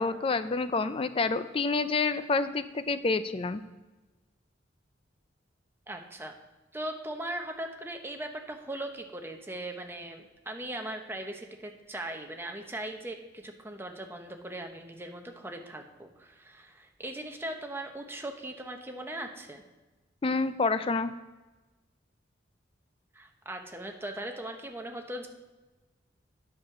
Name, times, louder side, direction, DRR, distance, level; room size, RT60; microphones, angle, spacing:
voice 1, 0.0-3.6 20.2-21.1, left 3 dB, 30° left, 12 dB, 0.4 m, -28 dB
voice 2, 5.9-6.3 6.7-19.6 23.1-25.3, right 1 dB, 10° right, 3 dB, 0.9 m, -39 dB
9.5 x 6.6 x 5.9 m, 1.2 s
head